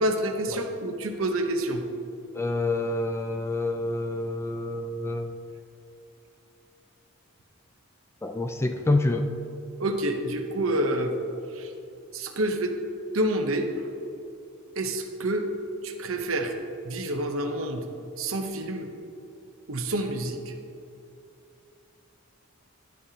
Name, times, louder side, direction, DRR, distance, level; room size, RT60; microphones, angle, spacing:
voice 1, 0.0-1.8 9.8-11.1 11.6-11.7 12.1-12.7 13.1-13.7 14.8-15.5 15.8-16.5 16.8-17.8 18.2-18.9 19.7-20.5, right 1 dB, 75° right, 5 dB, 0.8 m, -28 dB
voice 2, 2.3-5.4 8.2-9.3, left 2 dB, 10° left, 6 dB, 0.4 m, -27 dB
10.5 x 8.8 x 2.8 m, 2.7 s
head